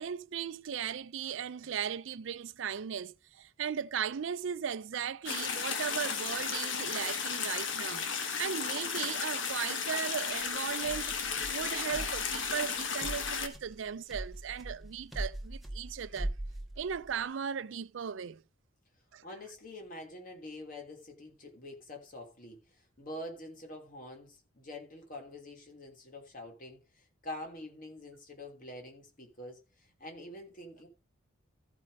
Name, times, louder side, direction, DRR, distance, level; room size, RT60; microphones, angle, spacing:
voice 1, 0.0-8.1 8.4-11.1 11.5-16.3 16.8-18.4 19.1-19.2, right 7 dB, 70° right, 0.4 m, -37 dB
sound 1, 5.3-13.5, left 6 dB, 65° left, 1.5 m, -34 dB
sound 2, 10.3-17.2, right 1 dB, ahead, 1.3 m, -42 dB
voice 2, 19.2-30.9, left 1 dB, 45° left, 3.0 m, -46 dB
14.0 x 4.9 x 5.2 m
head